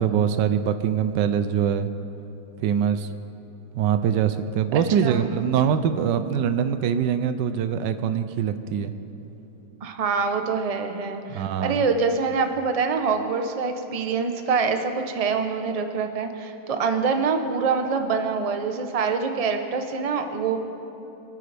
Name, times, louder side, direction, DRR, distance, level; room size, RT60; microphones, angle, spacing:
voice 1, 0.0-1.9 2.6-3.1 3.7-8.9 11.3-11.8, right 8 dB, 90° right, 10 dB, 1.3 m, -23 dB
voice 2, 4.7-5.3 9.8-20.6, right 5 dB, 30° right, 5 dB, 0.6 m, -25 dB
27.0 x 9.6 x 3.4 m, 3.0 s
omnidirectional pair, 1.9 m